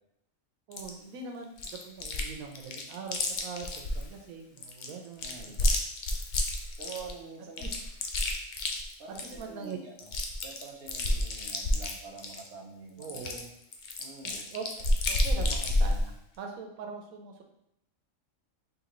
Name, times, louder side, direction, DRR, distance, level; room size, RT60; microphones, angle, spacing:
Chewing mastication, 0.7-0.9 1.6-2.3 2.5-4.0 4.6-7.1 7.6-9.4 9.7-9.8 10.0-12.5 13.0-16.0, left 1 dB, 85° left, 0.4 m, -29 dB
voice 1, 0.7-1.5 1.8-5.7 7.6-7.8 9.2-9.8 13.0-13.5 14.2-17.4, right 5 dB, 90° right, 3 dB, 1.1 m, -42 dB
voice 2, 5.2-5.6 6.8-7.7 9.0-10.1 10.4-13.2 14.0-14.5, right 4 dB, 55° right, 1 dB, 0.8 m, -46 dB
3.7 x 3.5 x 2.9 m, 0.80 s
omnidirectional pair, 1.4 m